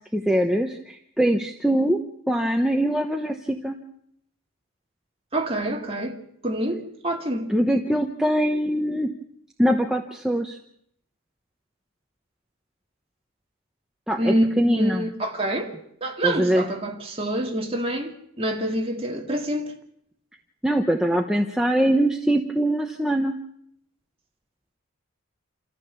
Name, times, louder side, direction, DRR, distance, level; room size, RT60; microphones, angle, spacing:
voice 1, 0.1-2.0 2.3-3.8 7.5-9.1 9.6-10.6 14.1-15.1 16.2-16.6 20.6-23.4, equal, 5° right, 0.9 m, -22 dB
voice 2, 5.3-6.2 6.4-7.5 14.2-15.7 16.0-19.7, right 1 dB, 25° right, 2.3 m, -26 dB
28.0 x 14.5 x 7.0 m
head